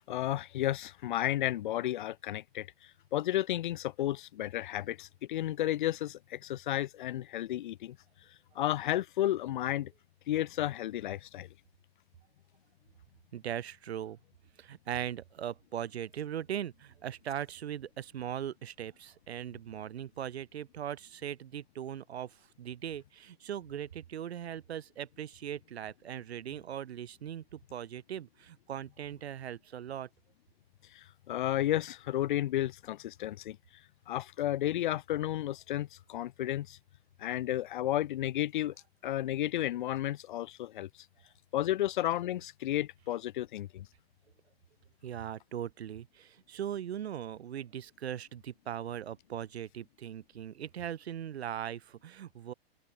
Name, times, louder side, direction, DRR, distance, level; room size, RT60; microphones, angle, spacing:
voice 1, 0.1-2.7 3.1-8.0 8.6-9.9 10.3-11.5 30.9-33.6 34.1-36.8 37.2-38.7 39.0-40.9 41.5-43.9, left 13 dB, 50° left, 1.9 m, -32 dB
voice 2, 13.3-14.2 14.6-30.1 45.0-52.5, right 10 dB, 85° right, 1.9 m, -39 dB
open air
hypercardioid pair, 170°, 31 cm